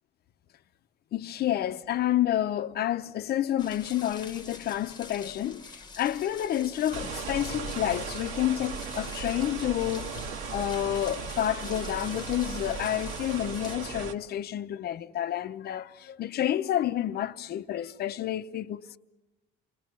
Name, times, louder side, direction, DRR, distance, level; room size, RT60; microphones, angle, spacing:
voice 1, 1.1-19.0, left 12 dB, 50° left, 0.7 m, -29 dB
sound 1, 3.6-13.8, left 4 dB, 20° left, 1.1 m, -46 dB
sound 2, 6.9-14.1, right 5 dB, 75° right, 1.8 m, -37 dB
28.5 x 21.0 x 6.1 m
cardioid pair, 125°, 21 cm